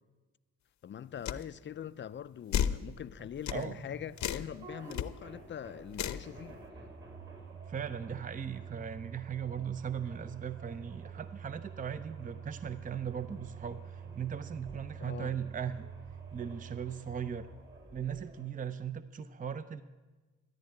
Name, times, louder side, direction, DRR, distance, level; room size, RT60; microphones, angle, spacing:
voice 1, 0.8-6.6 15.0-15.3, left 9 dB, 40° left, 0.5 m, -43 dB
sound 1, 1.3-1.4 2.5-2.8 3.5-3.6 4.2-4.5 4.9-5.1 5.9-6.3, left 10 dB, 70° left, 0.8 m, -31 dB
sound 2, 2.0-18.5, right 6 dB, 45° right, 6.5 m, -48 dB
voice 2, 7.7-15.9 16.3-17.5 17.9-19.8, right 7 dB, 25° right, 0.6 m, -38 dB
14.0 x 10.5 x 8.6 m
cardioid pair, 90°, 30 cm